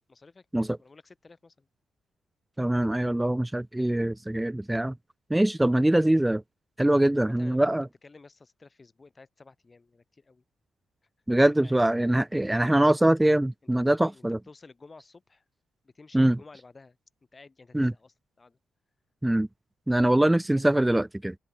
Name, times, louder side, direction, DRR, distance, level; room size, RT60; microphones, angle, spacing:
voice 1, 0.1-1.7 7.2-10.4 11.6-11.8 13.9-15.4 15.8-17.0 17.3-18.6 20.1-20.9, left 3 dB, 30° left, 4.9 m, -53 dB
voice 2, 2.6-4.9 5.3-6.4 6.8-7.9 11.3-14.4 16.1-16.4 17.7-17.9 19.2-19.5 19.9-21.3, right 1 dB, 10° right, 0.9 m, -23 dB
open air
figure-of-eight pair, 40°, 0 cm